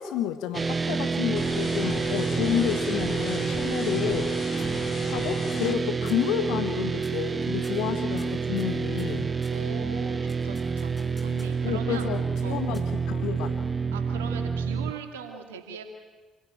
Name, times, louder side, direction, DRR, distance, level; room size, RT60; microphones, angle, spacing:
voice 1, 0.0-4.3 5.1-9.3 11.6-13.6, left 10 dB, 75° left, 9 dB, 1.2 m, -30 dB
sound 1, 0.5-14.9, right 5 dB, 35° right, 1.0 m, -28 dB
sound 2, 1.4-5.8, left 5 dB, 55° left, 2.5 m, -37 dB
sound 3, 4.6-5.2 5.5-5.8 6.1-6.4 7.0-7.3 7.6-9.6 10.3-11.7 12.4-13.2, left 1 dB, 15° left, 5.1 m, -54 dB
voice 2, 9.5-10.9 11.2-12.1 12.4-12.6 13.9-15.8, right 6 dB, 85° right, 5 dB, 2.2 m, -40 dB
27.0 x 16.5 x 9.0 m, 1.3 s
hypercardioid pair, 50°, 0 cm